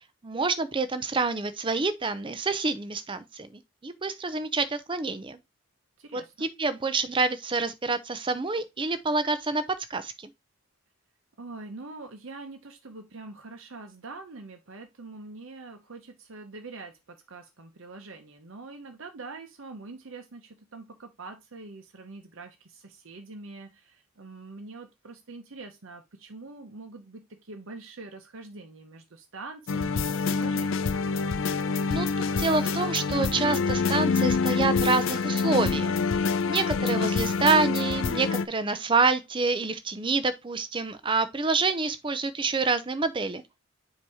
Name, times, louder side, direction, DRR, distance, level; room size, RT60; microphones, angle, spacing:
voice 1, 0.2-5.4 6.1-9.6 9.9-10.1 31.9-32.1 32.4-35.9 36.4-43.4, right 3 dB, 25° right, 0.5 m, -27 dB
voice 2, 6.0-6.5 11.4-30.9, right 3 dB, 60° right, 0.8 m, -44 dB
sound 1, 29.7-38.5, left 4 dB, 60° left, 0.5 m, -26 dB
7.2 x 2.8 x 4.8 m
head